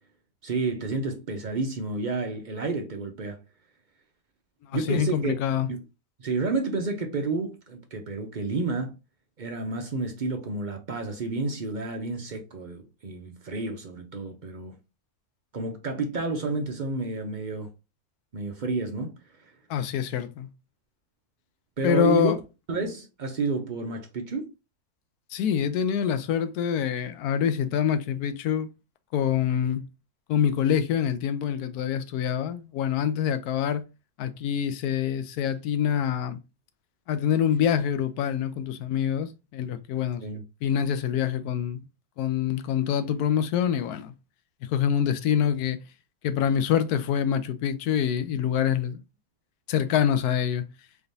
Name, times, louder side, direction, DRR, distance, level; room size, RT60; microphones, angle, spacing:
voice 1, 0.4-3.4 4.7-5.3 5.7-5.8 6.2-8.9 9.4-14.8 15.5-17.7 18.3-19.2 21.8-22.3 22.7-24.5 40.2-40.4, right 3 dB, 55° right, 0.5 m, -30 dB
voice 2, 4.7-5.7 19.7-20.5 21.8-22.4 25.3-28.7 29.1-29.8 30.3-33.8 34.2-36.4 37.1-40.2 40.6-41.9 42.2-44.1 44.7-45.8 46.2-49.0 49.7-50.6, left 8 dB, 90° left, 1.1 m, -25 dB
3.8 x 3.5 x 2.6 m
omnidirectional pair, 1.6 m